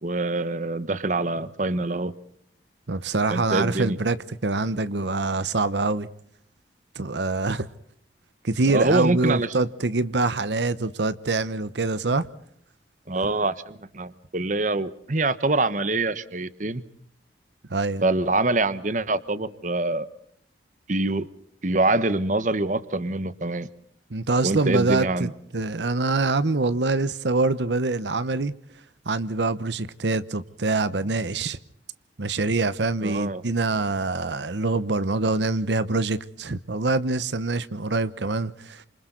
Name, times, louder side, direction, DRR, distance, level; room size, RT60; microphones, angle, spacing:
voice 1, 0.0-2.1 3.3-4.0 8.7-9.5 13.1-16.8 18.0-20.1 20.9-21.3 21.6-23.7 24.4-25.3 33.0-33.4, right 2 dB, 45° right, 1.1 m, -25 dB
voice 2, 2.9-6.1 6.9-7.7 8.4-12.3 17.7-18.0 24.1-28.5 29.1-31.6 32.2-38.8, right 3 dB, 75° right, 1.0 m, -25 dB
29.5 x 27.0 x 3.9 m
head